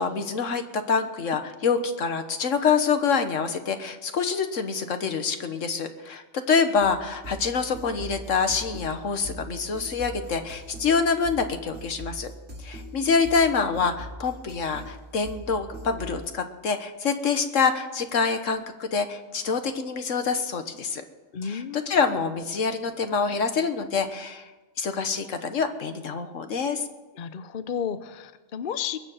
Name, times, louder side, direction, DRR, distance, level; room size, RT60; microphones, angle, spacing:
voice 1, 0.0-12.3 12.6-21.0 21.4-24.5 24.8-26.9, left 5 dB, 75° left, 8 dB, 1.6 m, -26 dB
sound 1, 6.8-16.3, right 1 dB, 55° right, 3.1 m, -41 dB
voice 2, 21.3-21.9 27.2-29.0, left 8 dB, 50° left, 12 dB, 0.7 m, -32 dB
21.0 x 7.4 x 8.9 m, 1.2 s
omnidirectional pair, 1.3 m